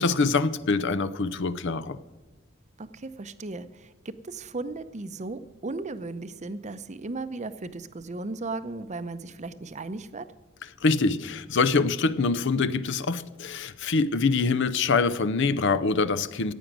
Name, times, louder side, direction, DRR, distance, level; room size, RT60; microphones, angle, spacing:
voice 1, 0.0-2.0 10.8-16.5, left 4 dB, 60° left, 14 dB, 0.6 m, -24 dB
voice 2, 2.8-10.3, right 3 dB, 35° right, 12 dB, 0.7 m, -36 dB
14.5 x 9.1 x 6.2 m, 1.2 s
head